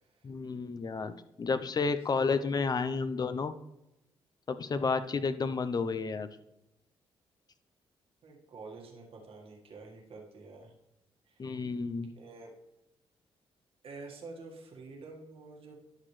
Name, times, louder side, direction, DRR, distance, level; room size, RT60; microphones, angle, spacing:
voice 1, 0.2-3.5 4.5-6.3 11.4-12.1, left 4 dB, 40° left, 11 dB, 0.7 m, -31 dB
voice 2, 2.1-2.5 8.2-10.7 11.2-11.4 12.2-12.5 13.8-15.7, right 3 dB, 65° right, 0 dB, 1.8 m, -48 dB
11.5 x 6.1 x 3.3 m, 0.90 s
cardioid pair, 75°, 10 cm